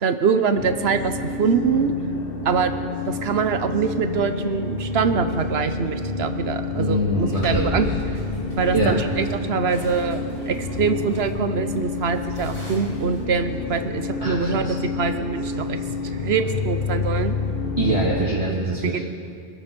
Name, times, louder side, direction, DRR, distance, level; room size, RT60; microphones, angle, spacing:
voice 1, 0.0-1.9 2.4-2.7 3.1-7.9 8.6-15.8 16.0-17.4 18.9-19.0, right 5 dB, 75° right, 9 dB, 1.1 m, -24 dB
sound 1, 0.6-18.3, left 3 dB, 60° left, 1.3 m, -29 dB
voice 2, 6.7-8.0 8.7-9.0 14.2-14.7 17.8-19.1, right 1 dB, 35° right, -6 dB, 1.9 m, -24 dB
sound 2, 7.0-13.2, left 1 dB, 40° left, 4.8 m, -36 dB
24.0 x 8.1 x 6.1 m, 2.3 s
omnidirectional pair, 1.1 m